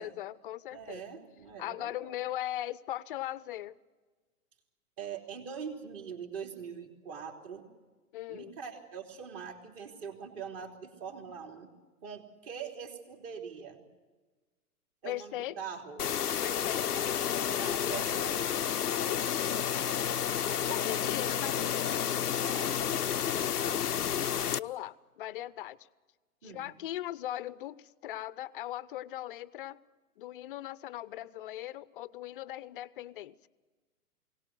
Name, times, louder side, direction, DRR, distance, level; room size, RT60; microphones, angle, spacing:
voice 1, 0.0-1.2 1.6-3.8 8.1-8.6 15.0-15.6 16.4-17.0 19.0-19.8 20.7-22.1 24.5-25.8 26.4-29.8 30.2-33.5, left 13 dB, 35° left, 20 dB, 0.6 m, -39 dB
voice 2, 0.7-2.1 5.0-7.7 8.3-11.7 12.0-13.8 15.0-16.2 16.9-17.1 17.5-18.8 20.5-21.1 22.4-23.1 23.4-24.6 26.4-26.7, right 7 dB, 35° right, 3 dB, 3.3 m, -43 dB
sound 1, 16.0-24.6, left 9 dB, 85° left, 0.6 m, -30 dB
22.0 x 18.0 x 9.5 m, 1.3 s
figure-of-eight pair, 115°, 45 cm